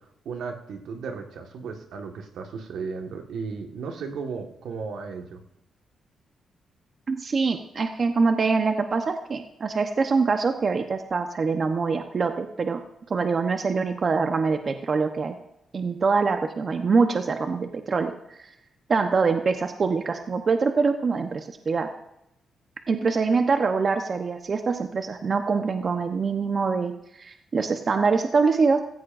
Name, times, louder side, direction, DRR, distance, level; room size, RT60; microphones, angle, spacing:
voice 1, 0.2-5.4, right 5 dB, 80° right, 4 dB, 1.6 m, -35 dB
voice 2, 7.1-12.8 13.1-15.3 15.7-18.1 18.4-18.5 18.9-21.9 22.9-26.9 27.2-28.8, right 4 dB, 45° right, 6 dB, 0.9 m, -24 dB
16.0 x 15.5 x 2.6 m, 0.83 s
cardioid pair, 85°, 0 cm